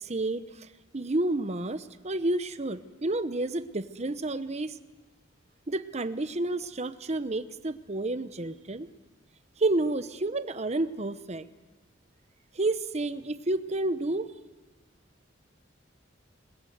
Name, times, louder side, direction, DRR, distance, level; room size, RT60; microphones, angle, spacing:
voice 1, 0.0-4.8 5.7-8.9 9.6-11.5 12.5-14.3, right 2 dB, 35° right, 12 dB, 0.9 m, -30 dB
27.5 x 20.5 x 8.0 m, 1.3 s
head